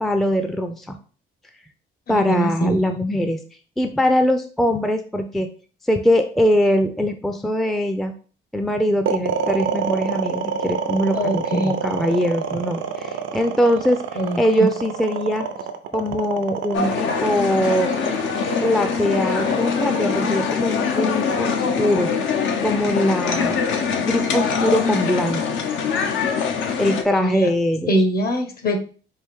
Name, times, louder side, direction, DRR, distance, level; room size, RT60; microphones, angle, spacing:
voice 1, 0.0-1.0 2.1-3.4 3.8-5.5 5.9-8.1 8.5-14.0 14.4-15.5 15.9-17.9 18.6-22.1 22.6-23.6 24.1-25.4 26.8-27.9, equal, ahead, 7 dB, 0.4 m, -22 dB
voice 2, 2.1-2.8 11.1-11.7 14.2-14.7 27.1-27.5 27.9-28.8, right 1 dB, 50° left, 6 dB, 1.0 m, -22 dB
sound 1, 9.1-21.3, right 7 dB, 80° right, 0.6 m, -27 dB
sound 2, 16.7-27.0, left 6 dB, 75° left, 0.7 m, -23 dB
4.6 x 2.5 x 3.5 m, 0.39 s
cardioid pair, 90°, 20 cm